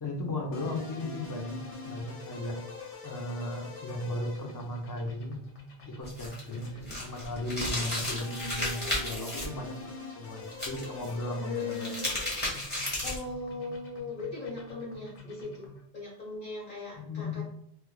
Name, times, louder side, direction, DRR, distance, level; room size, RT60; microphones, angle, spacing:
voice 1, 0.0-2.6 3.0-5.4 5.9-11.9 17.0-17.4, left 1 dB, 30° left, 1 dB, 0.3 m, -36 dB
sound 1, 0.5-15.9, left 3 dB, 85° left, 1.1 m, -45 dB
sound 2, 6.0-9.4 10.5-11.1 11.6-13.3, left 1 dB, 10° left, 1.1 m, -33 dB
voice 2, 6.5-7.0 7.7-8.0 11.4-12.1 13.0-15.7 15.9-17.4, left 3 dB, 50° left, -5 dB, 1.5 m, -39 dB
4.4 x 2.3 x 2.3 m, 0.72 s
omnidirectional pair, 1.1 m